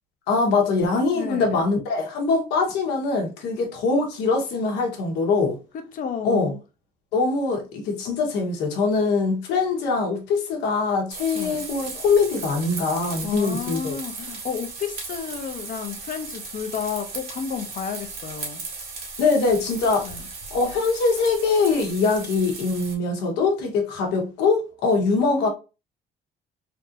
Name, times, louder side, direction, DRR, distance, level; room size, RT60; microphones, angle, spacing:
voice 1, 0.3-5.6 6.2-6.5 7.1-14.0 19.2-20.1 20.5-25.5, left 4 dB, 90° left, 1.1 m, -23 dB
voice 2, 1.1-1.6 5.7-6.6 11.3-11.6 13.2-18.6 20.0-20.2 25.2-25.5, left 7 dB, 50° left, 0.7 m, -32 dB
sound 1, 11.1-22.9, right 4 dB, 65° right, 1.6 m, -36 dB
3.4 x 2.5 x 2.7 m
cardioid pair, 110°, 17 cm